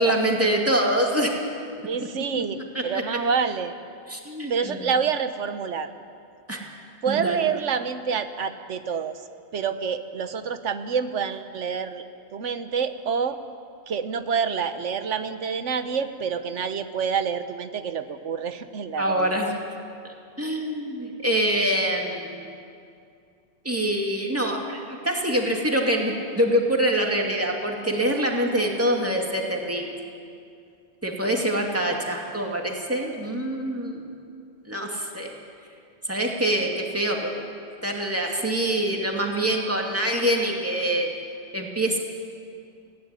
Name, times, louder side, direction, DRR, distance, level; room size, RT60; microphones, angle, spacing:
voice 1, 0.0-1.4 2.7-3.0 4.1-4.8 6.5-6.6 7.1-7.4 19.0-19.5 20.4-22.5 23.6-29.9 31.0-34.0 34.7-35.4 36.1-37.4 37.8-41.1 41.5-42.0, right 1 dB, 10° right, 0 dB, 2.4 m, -25 dB
voice 2, 1.8-3.7 4.5-5.9 7.0-9.3 9.5-12.0 12.3-13.4 13.9-19.5, right 6 dB, 80° right, 10 dB, 1.3 m, -27 dB
18.5 x 16.0 x 9.8 m, 2.4 s
omnidirectional pair, 1.2 m